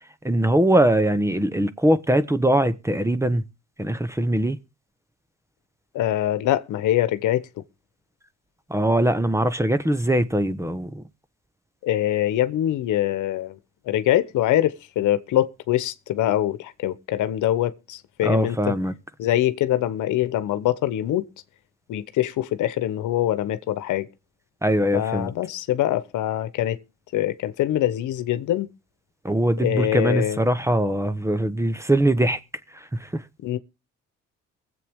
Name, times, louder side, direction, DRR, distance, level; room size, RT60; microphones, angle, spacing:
voice 1, 0.2-3.4 3.8-4.6 8.7-11.0 18.2-18.9 24.6-25.3 29.2-32.4 32.7-33.2, right 1 dB, 10° right, 1.0 m, -22 dB
voice 2, 5.9-7.6 11.8-13.6 13.8-18.8 19.2-21.3 21.9-24.1 24.9-26.8 27.1-28.7 29.6-30.4 33.4-33.6, left 13 dB, 85° left, 1.1 m, -24 dB
22.5 x 8.0 x 3.6 m
cardioid pair, 90°, 30 cm